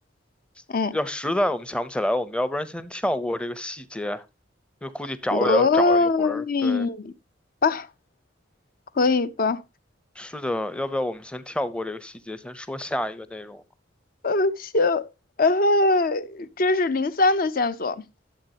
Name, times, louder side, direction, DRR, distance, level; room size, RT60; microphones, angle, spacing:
voice 1, 0.9-4.2 4.8-6.9 10.2-13.6, left 1 dB, 5° left, 0.6 m, -28 dB
voice 2, 5.3-7.1 7.6-7.9 9.0-9.6 14.2-15.1 15.4-18.0, left 3 dB, 50° left, 0.6 m, -22 dB
12.0 x 7.6 x 2.8 m
head